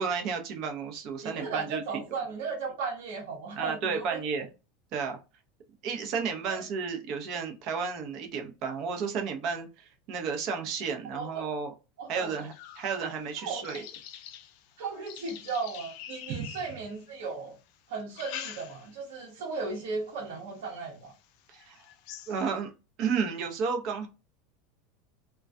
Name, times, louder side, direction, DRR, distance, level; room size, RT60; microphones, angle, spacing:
voice 1, 0.0-1.8 3.6-4.4 4.9-5.2 5.8-11.7 12.1-13.8 16.3-16.5 21.5-21.8 22.3-22.7 23.0-24.1, right 5 dB, 55° right, 0.7 m, -32 dB
voice 2, 1.2-4.2 6.4-6.6 11.0-11.5 12.0-12.4 13.4-13.8 14.8-17.6 17.9-21.1, right 4 dB, 75° right, 1.0 m, -36 dB
sound 1, 12.3-17.3 17.9-19.1 19.5-19.9 20.5-20.6 21.1-21.2 21.5-22.6, left 11 dB, 60° left, 0.4 m, -46 dB
2.2 x 2.2 x 2.5 m
supercardioid pair, 120°, 0 cm